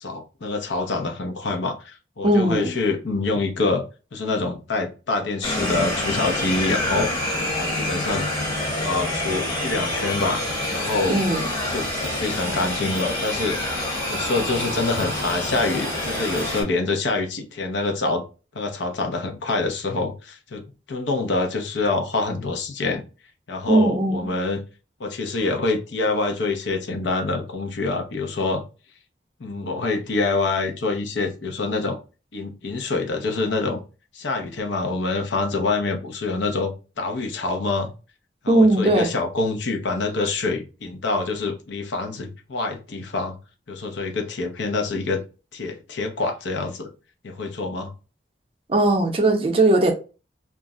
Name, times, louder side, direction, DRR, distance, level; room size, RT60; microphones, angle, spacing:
voice 1, 0.0-3.8 4.1-7.1 7.6-8.3 8.8-11.2 11.7-13.6 14.1-18.2 18.5-20.6 20.9-23.0 23.5-24.6 25.0-28.6 29.4-32.0 32.3-33.8 34.1-37.9 38.4-43.4 43.7-45.2 45.5-46.9 47.2-47.9, left 3 dB, 80° left, 0.6 m, -26 dB
voice 2, 2.2-2.7 11.1-11.4 23.7-24.3 38.5-39.1 48.7-49.9, right 2 dB, 30° right, 0.5 m, -18 dB
sound 1, 5.4-16.6, left 1 dB, 25° left, 0.8 m, -27 dB
2.4 x 2.0 x 3.6 m
head